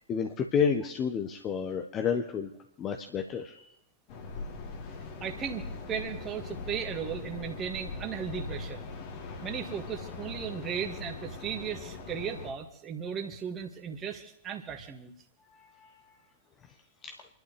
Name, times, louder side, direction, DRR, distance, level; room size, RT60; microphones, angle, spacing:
voice 1, 0.1-2.5 2.8-3.6 15.5-15.9 17.0-17.1, left 6 dB, 30° left, 4 dB, 1.1 m, -30 dB
sound 1, 4.1-12.5, left 3 dB, 45° left, 2.3 m, -41 dB
voice 2, 5.2-8.9 9.4-15.1, right 7 dB, 25° right, 2 dB, 2.0 m, -36 dB
30.0 x 12.0 x 3.3 m, 0.77 s
figure-of-eight pair, 90°, 0 cm